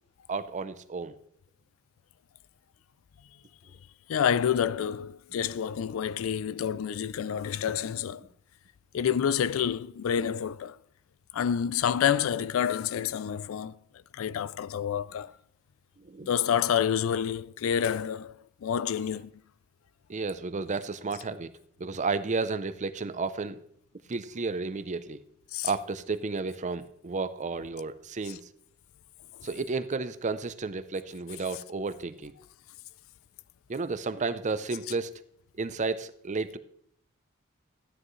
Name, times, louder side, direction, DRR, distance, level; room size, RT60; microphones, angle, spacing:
voice 1, 0.3-1.2 7.3-7.5 16.0-16.3 20.1-21.5 21.8-23.6 24.1-25.2 25.6-28.5 29.4-32.3 33.7-35.1 35.5-36.6, right 4 dB, 35° right, 0.6 m, -32 dB
voice 2, 4.1-8.3 8.9-10.8 11.3-13.8 14.1-15.4 16.2-18.3 18.6-19.3 25.5-25.7 29.4-29.5, left 8 dB, 75° left, 0.3 m, -28 dB
13.5 x 9.9 x 3.2 m
head